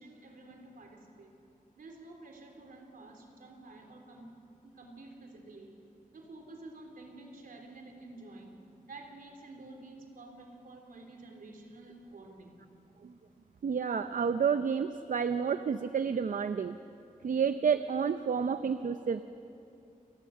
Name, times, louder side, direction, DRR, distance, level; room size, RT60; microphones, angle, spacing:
voice 1, 0.0-1.3 1.8-4.3 4.6-5.8 6.1-12.5, right 2 dB, 80° right, 2 dB, 3.6 m, -50 dB
voice 2, 13.6-16.8 17.2-19.2, right 6 dB, 65° right, 10 dB, 0.7 m, -30 dB
29.0 x 20.5 x 6.6 m, 2.7 s
wide cardioid pair, 100°, 14 cm